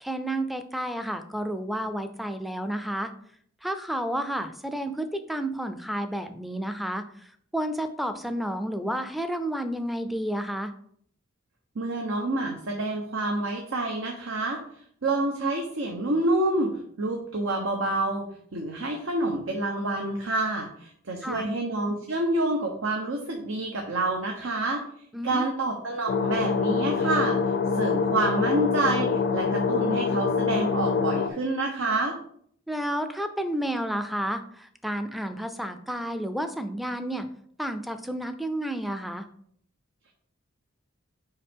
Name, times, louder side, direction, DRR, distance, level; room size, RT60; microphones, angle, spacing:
voice 1, 0.0-3.1 3.6-7.0 7.5-10.7 21.2-21.5 25.1-25.4 32.7-37.3 37.6-39.3, right 1 dB, ahead, 8 dB, 0.4 m, -31 dB
voice 2, 11.8-14.6 15.0-16.7 17.0-24.8 25.2-27.4 27.7-32.2, right 2 dB, 80° right, 1 dB, 0.9 m, -28 dB
sound 1, 26.1-31.3, left 5 dB, 55° left, 0.5 m, -25 dB
5.6 x 4.9 x 3.6 m, 0.63 s
head